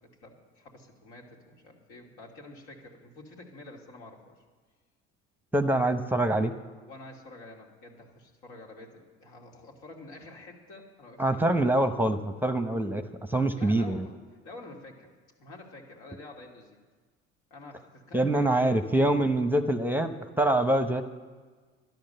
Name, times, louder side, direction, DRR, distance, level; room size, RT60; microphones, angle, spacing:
voice 1, 0.0-4.4 6.8-11.6 13.6-14.2 14.4-15.1 15.4-16.8 17.5-18.8, left 2 dB, 75° left, 0 dB, 2.6 m, -48 dB
voice 2, 5.5-6.5 11.2-14.0 18.1-21.0, right 1 dB, 5° right, 8 dB, 0.8 m, -25 dB
12.0 x 10.5 x 6.7 m, 1.4 s
hypercardioid pair, 75°, 31 cm